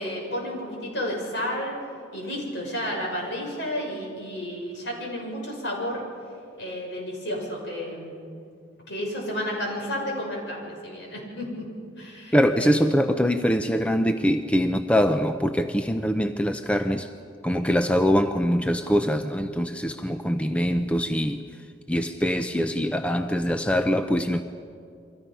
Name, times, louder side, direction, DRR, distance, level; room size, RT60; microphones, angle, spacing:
voice 1, 0.0-1.7 2.1-6.0 6.6-8.2 8.9-11.6 12.0-12.8, equal, 65° left, -1 dB, 7.0 m, -31 dB
voice 2, 12.3-17.1 17.4-21.4 21.9-24.4, equal, 5° left, 7 dB, 0.6 m, -23 dB
30.0 x 23.5 x 5.5 m, 2.4 s
head